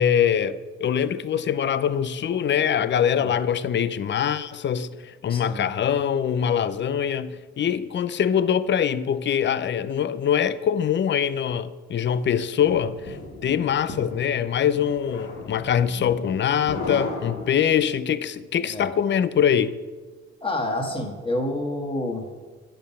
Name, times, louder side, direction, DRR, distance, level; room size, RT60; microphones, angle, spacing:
voice 1, 0.0-13.2 13.4-19.8, left 8 dB, 40° left, 0.5 m, -23 dB
voice 2, 5.3-5.7 18.7-18.9 20.4-22.2, left 1 dB, 15° left, 1.7 m, -28 dB
sound 1, 12.2-18.1, left 2 dB, 55° left, 1.8 m, -36 dB
8.6 x 5.5 x 5.6 m
cardioid pair, 90°, 30 cm